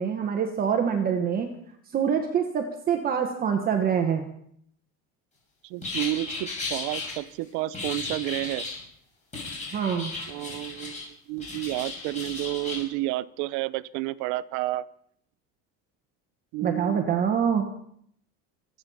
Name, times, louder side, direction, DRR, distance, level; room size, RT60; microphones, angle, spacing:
voice 1, 0.0-1.5 1.9-4.3 9.7-10.1 16.6-17.7, right 7 dB, 25° right, 4 dB, 1.4 m, -25 dB
voice 2, 5.6-8.7 10.3-11.0 11.3-14.8 16.5-17.2, right 18 dB, 60° right, 18 dB, 0.8 m, -31 dB
sound 1, 5.8-7.1 7.7-8.8 9.3-11.0 11.4-12.8, left 3 dB, 20° left, 6.7 m, -35 dB
25.5 x 9.0 x 5.6 m, 0.67 s
cardioid pair, 165°, 34 cm